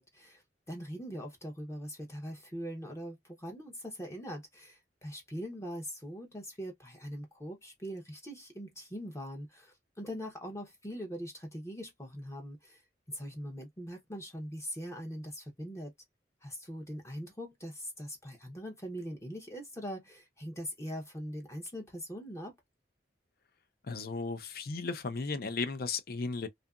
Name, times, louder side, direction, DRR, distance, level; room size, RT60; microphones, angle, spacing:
voice 1, 0.0-12.8 13.1-15.9 16.4-22.5, equal, 15° left, 0.6 m, -42 dB
voice 2, 23.9-26.5, left 4 dB, 55° left, 0.5 m, -35 dB
2.7 x 2.4 x 2.3 m
head